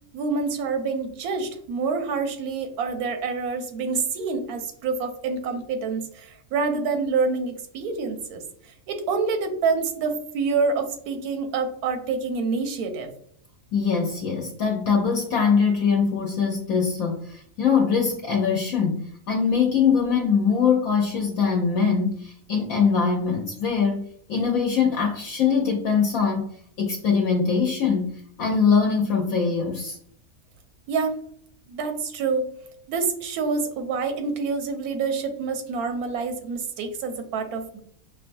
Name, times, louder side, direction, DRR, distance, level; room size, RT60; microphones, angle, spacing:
voice 1, 0.1-13.1 30.9-31.2 31.7-32.5 32.9-37.8, right 4 dB, 85° right, 7 dB, 1.2 m, -27 dB
voice 2, 13.7-26.5 26.8-30.0, left 6 dB, 75° left, 0 dB, 1.1 m, -22 dB
5.4 x 2.3 x 2.5 m, 0.63 s
omnidirectional pair, 1.5 m